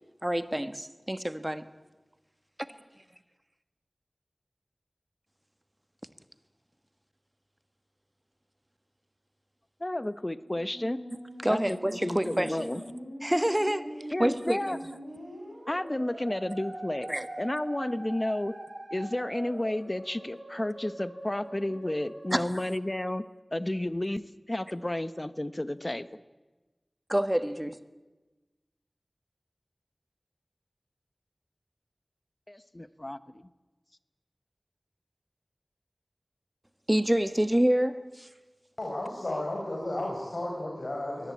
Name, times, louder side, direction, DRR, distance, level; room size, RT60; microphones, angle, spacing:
voice 1, 0.2-1.7 11.4-12.7 13.2-13.9 14.2-14.7 17.1-17.3 22.3-22.5 27.1-27.8 36.9-38.3, right 1 dB, 15° right, 12 dB, 1.3 m, -27 dB
voice 2, 9.8-11.0 11.5-11.8 12.0-12.8 14.1-14.8 15.7-17.1 17.4-18.6 18.9-23.3 23.5-26.1 32.5-33.4, left 1 dB, 30° left, 14 dB, 1.0 m, -32 dB
Musical instrument, 10.3-23.7, right 1 dB, 85° right, 7.7 m, -43 dB
voice 3, 38.8-41.3, left 1 dB, 65° left, 0 dB, 4.8 m, -33 dB
23.5 x 18.5 x 8.5 m, 1.2 s
wide cardioid pair, 40°, 0 cm